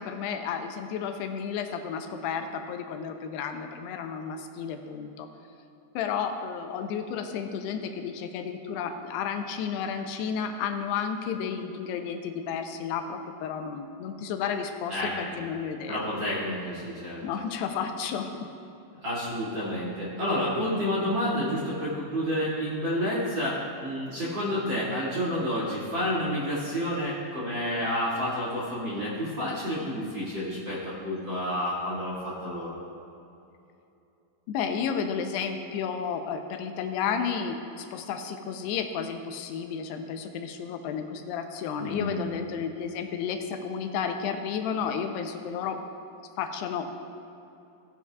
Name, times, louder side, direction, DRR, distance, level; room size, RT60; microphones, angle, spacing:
voice 1, 0.0-5.3 6.0-16.0 17.2-18.5 34.5-45.8 46.4-47.1, left 7 dB, 90° left, 6 dB, 2.8 m, -32 dB
voice 2, 14.9-15.4 15.9-17.2 19.0-32.8 41.8-42.2, equal, 35° right, -8 dB, 2.2 m, -30 dB
17.5 x 9.7 x 2.4 m, 2.8 s
omnidirectional pair, 4.7 m